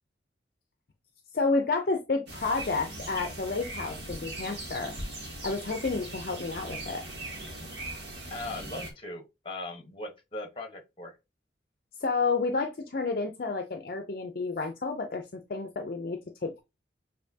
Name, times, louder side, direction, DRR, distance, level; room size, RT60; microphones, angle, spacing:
voice 1, 1.3-4.9 5.4-7.0 12.0-16.6, left 3 dB, 55° left, 0.5 m, -30 dB
sound 1, 2.3-8.9, right 1 dB, 70° right, 1.4 m, -40 dB
voice 2, 8.3-11.1, left 2 dB, 30° left, 1.1 m, -39 dB
6.6 x 2.6 x 2.7 m
head